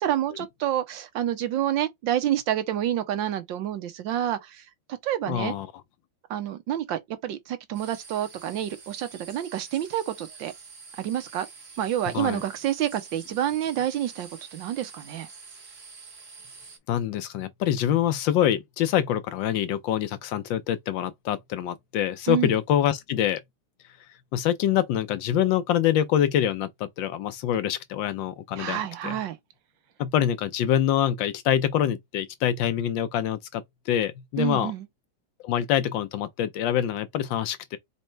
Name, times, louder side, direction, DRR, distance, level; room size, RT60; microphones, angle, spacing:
voice 1, 0.0-4.6 4.9-5.5 6.3-10.5 11.0-11.5 11.8-15.3 22.3-22.5 28.6-29.4 34.4-34.9, right 11 dB, 75° right, 1.5 m, -28 dB
voice 2, 5.3-5.7 12.1-12.4 16.9-23.4 24.3-29.2 30.0-34.7 35.4-37.8, left 10 dB, 75° left, 1.3 m, -25 dB
sound 1, 7.7-16.8, right 4 dB, 40° right, 1.6 m, -47 dB
4.2 x 2.8 x 4.4 m
omnidirectional pair, 2.2 m